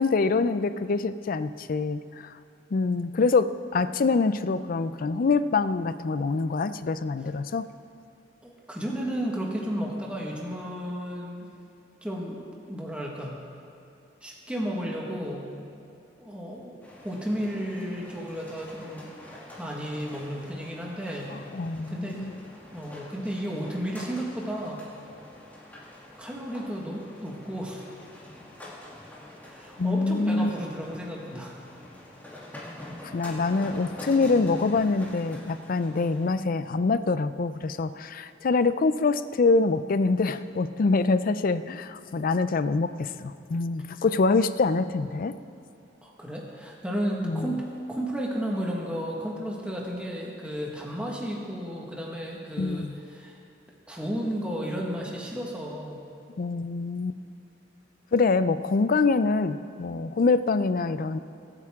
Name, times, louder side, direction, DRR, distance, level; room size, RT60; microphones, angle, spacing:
voice 1, 0.0-2.3 2.7-7.7 21.3-22.3 29.8-30.5 33.0-45.3 47.2-47.6 52.6-53.0 56.4-57.2 58.1-61.2, left 3 dB, 50° left, 13 dB, 0.4 m, -25 dB
voice 2, 8.4-11.5 12.0-12.4 12.7-13.4 14.2-15.5 16.2-19.1 19.6-21.3 21.9-22.3 22.7-24.8 26.2-27.8 29.5-31.6 46.0-53.4 53.9-56.0, equal, 5° right, -3 dB, 1.6 m, -33 dB
sound 1, 16.8-36.3, left 1 dB, 10° left, 2.6 m, -45 dB
23.5 x 9.0 x 3.7 m, 2.6 s
head